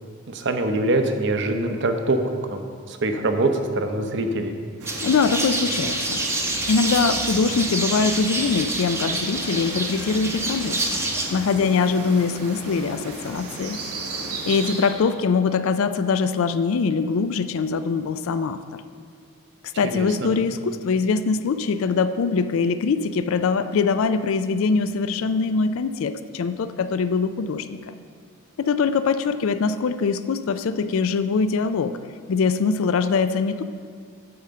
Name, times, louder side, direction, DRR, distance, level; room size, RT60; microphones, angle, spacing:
voice 1, 0.3-2.2 2.5-4.5 19.8-20.3, right 2 dB, 55° right, 6 dB, 0.7 m, -24 dB
sound 1, 4.8-15.2, right 2 dB, 90° right, 1.4 m, -36 dB
sound 2, 4.9-11.2, right 2 dB, 10° right, 0.7 m, -27 dB
voice 2, 5.0-6.2 6.7-11.0 11.3-13.8 14.4-18.8 19.8-27.9 28.6-32.0 32.3-33.6, left 5 dB, 65° left, 12 dB, 0.4 m, -23 dB
8.6 x 5.0 x 6.7 m, 2.1 s
head